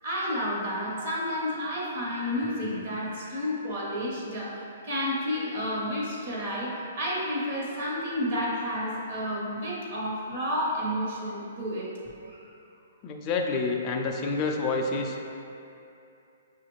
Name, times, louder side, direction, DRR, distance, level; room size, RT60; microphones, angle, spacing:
voice 1, 0.0-11.9 12.3-12.4, equal, 40° right, -5 dB, 1.0 m, -31 dB
voice 2, 13.0-15.2, left 3 dB, 20° left, 1 dB, 0.3 m, -28 dB
6.6 x 2.4 x 3.1 m, 2.7 s
hypercardioid pair, 170°, 0 cm